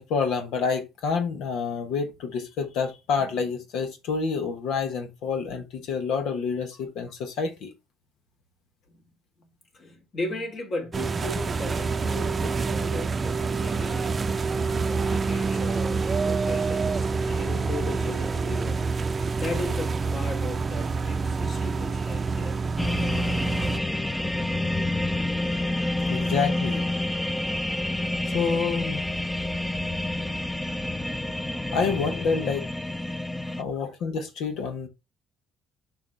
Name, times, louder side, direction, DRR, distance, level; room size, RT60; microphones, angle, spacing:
voice 1, 0.0-7.7 26.1-26.8 28.3-29.0 31.7-32.7 33.6-34.9, left 5 dB, 75° left, 1.2 m, -28 dB
voice 2, 9.7-14.1 14.9-18.8 19.4-22.6 33.8-33.9, left 2 dB, 50° left, 3.3 m, -37 dB
sound 1, 10.9-23.8, right 4 dB, 35° right, 0.6 m, -27 dB
sound 2, 22.8-33.6, left 1 dB, 10° left, 0.6 m, -28 dB
7.0 x 4.8 x 3.4 m
supercardioid pair, 70°, 0 cm